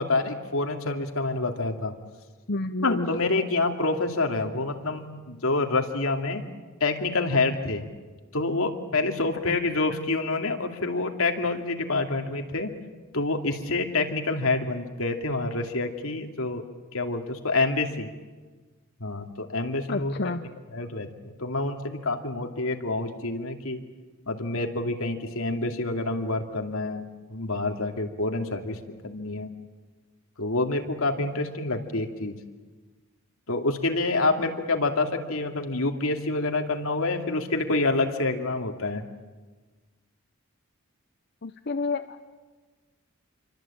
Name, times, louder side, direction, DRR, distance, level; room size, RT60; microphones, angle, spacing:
voice 1, 0.0-1.9 2.8-6.4 6.8-7.9 8.3-12.7 13.1-16.6 16.9-18.1 19.0-20.3 20.7-23.8 24.3-27.0 27.3-28.8 29.0-29.5 30.4-32.4 33.5-39.0, left 2 dB, 70° left, 4 dB, 2.7 m, -27 dB
voice 2, 2.5-3.1 9.5-9.6 9.9-10.0 19.9-20.4 41.4-42.3, left 3 dB, 50° left, 8 dB, 0.8 m, -30 dB
28.0 x 24.0 x 8.8 m, 1.3 s
head